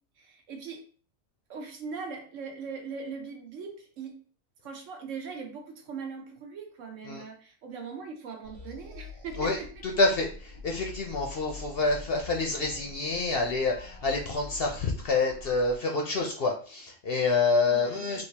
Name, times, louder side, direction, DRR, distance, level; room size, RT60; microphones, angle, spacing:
voice 1, 0.2-0.8 1.5-4.2 4.6-9.8 17.7-18.2, right 5 dB, 65° right, 4 dB, 1.0 m, -40 dB
sound 1, 8.4-15.8, left 3 dB, 30° right, 0.8 m, -45 dB
voice 2, 10.0-18.2, left 3 dB, 55° left, 1 dB, 0.7 m, -27 dB
3.5 x 2.7 x 2.8 m, 0.41 s
omnidirectional pair, 1.4 m